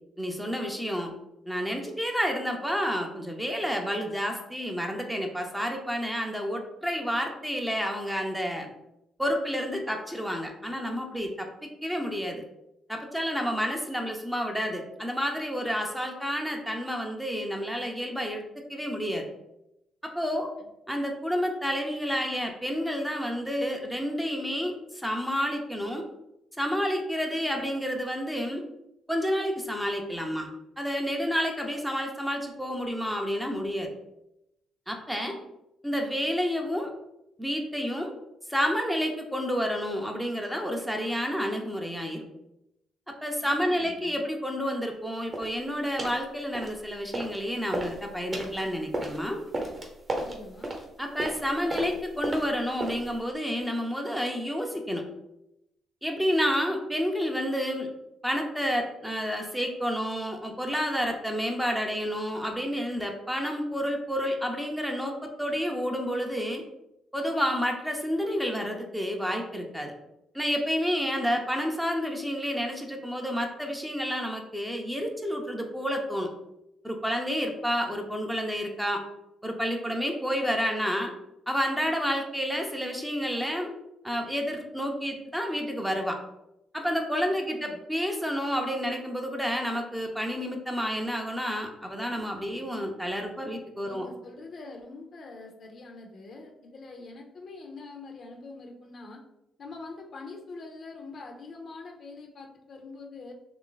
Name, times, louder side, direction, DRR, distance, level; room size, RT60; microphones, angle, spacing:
voice 1, 0.2-1.1 1.5-8.7 9.2-12.4 12.9-18.4 18.7-19.3 20.0-20.5 20.9-26.0 26.6-28.6 29.1-30.5 30.8-33.9 34.9-35.4 35.8-36.9 37.4-38.1 38.5-42.2 43.2-49.4 51.0-55.0 56.0-57.9 58.2-66.6 67.1-69.9 70.3-76.3 76.8-79.0 79.4-81.1 81.5-83.7 84.0-86.2 86.7-94.1, equal, 5° right, 2 dB, 0.5 m, -30 dB
voice 2, 35.2-35.5 43.6-44.1 50.2-50.7 87.5-87.8 93.8-99.2 99.6-103.3, left 3 dB, 55° left, 2 dB, 0.6 m, -44 dB
sound 1, 45.3-45.6 46.0-46.2 46.5-47.4 47.7-53.2, right 1 dB, 30° right, 0.8 m, -34 dB
3.0 x 2.5 x 3.8 m, 0.87 s
cardioid pair, 90°, 0 cm